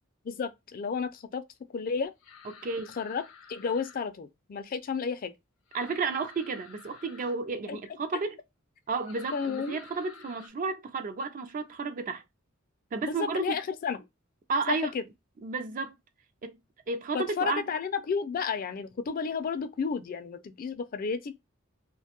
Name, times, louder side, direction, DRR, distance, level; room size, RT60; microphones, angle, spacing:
voice 1, 0.2-1.4 1.7-2.1 3.0-3.2 3.5-5.3 7.7-7.8 9.3-9.8 13.0-14.1 14.7-15.0 17.1-21.4, left 5 dB, 45° left, 0.4 m, -32 dB
sound 1, 2.2-4.0 5.7-7.4 9.0-10.5, left 6 dB, 75° left, 0.7 m, -51 dB
voice 2, 2.6-2.9 5.7-8.4 8.9-12.2 12.9-13.6 14.5-14.9 15.4-16.0 16.4-16.6 16.9-17.6, right 4 dB, 40° right, 0.4 m, -32 dB
2.5 x 2.2 x 2.8 m
head